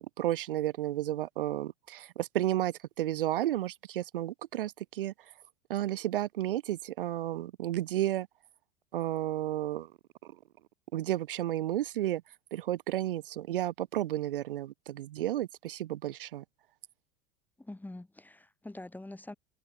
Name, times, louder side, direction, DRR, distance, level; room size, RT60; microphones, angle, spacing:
voice 1, 0.0-5.3 5.7-8.3 8.9-9.9 10.2-10.4 10.9-12.2 12.5-16.4, right 13 dB, 65° right, 1.6 m, -32 dB
voice 2, 17.6-19.3, left 2 dB, 5° left, 3.7 m, -45 dB
open air
figure-of-eight pair, 85°, 30 cm